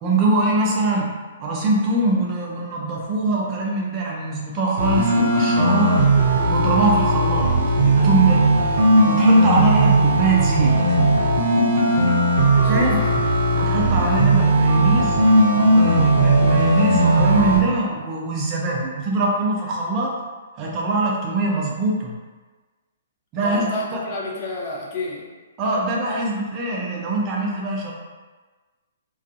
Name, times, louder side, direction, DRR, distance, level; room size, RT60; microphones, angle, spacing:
voice 1, 0.0-6.1 6.5-7.5 7.9-8.5 9.0-11.0 12.7-12.9 13.5-15.2 15.7-20.1 20.6-22.1 23.3-24.0 25.6-27.9, right 2 dB, 30° right, -2 dB, 0.4 m, -22 dB
sound 1, 4.8-17.6, right 1 dB, 80° right, 0.6 m, -17 dB
voice 2, 12.6-13.1 23.4-25.3, left 2 dB, 40° left, -3 dB, 0.6 m, -31 dB
2.4 x 2.3 x 2.5 m, 1.3 s
hypercardioid pair, 140°, 0 cm